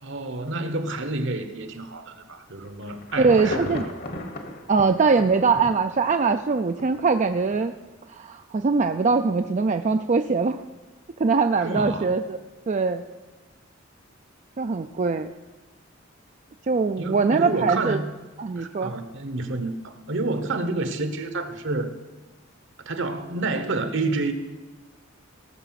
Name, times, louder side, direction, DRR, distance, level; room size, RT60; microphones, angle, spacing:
voice 1, 0.0-3.9 11.6-12.1 17.0-18.1 18.6-21.9 22.8-24.3, right 2 dB, 65° right, 9 dB, 1.2 m, -29 dB
Insect / Thunder / Rain, 2.6-7.0 7.5-7.6, left 2 dB, 50° left, 1.3 m, -36 dB
voice 2, 3.2-3.9 4.7-7.7 8.1-10.6 11.2-12.4 12.7-13.0 14.6-15.3 16.7-18.0 18.4-18.9, right 4 dB, 35° right, 7 dB, 0.4 m, -22 dB
18.0 x 7.0 x 5.8 m, 1.2 s
head